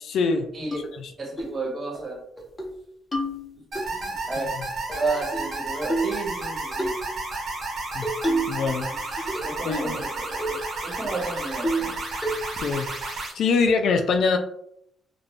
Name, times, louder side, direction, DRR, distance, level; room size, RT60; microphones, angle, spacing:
voice 1, 0.0-0.5 0.9-1.1 7.9-8.1 8.5-9.3 9.7-10.0 12.6-14.4, left 4 dB, 70° left, 6 dB, 0.3 m, -24 dB
sound 1, 0.7-0.8 1.4-1.6 1.9-2.0 2.4-2.7 3.1-3.9 4.9-5.5 5.9-6.2 6.8-7.0 8.0-8.6 8.9-9.6 10.0-10.1 10.4-10.6 11.0-11.1 11.6-11.9 12.2-12.7, right 1 dB, 15° left, 0.7 m, -28 dB
voice 2, 1.2-2.2 3.9-4.5 4.9-6.9 9.4-12.0, right 3 dB, 25° right, -3 dB, 1.3 m, -32 dB
sound 2, 3.7-13.3, right 3 dB, 60° right, 0.9 m, -32 dB
2.4 x 2.1 x 3.2 m, 0.73 s
cardioid pair, 90°, 0 cm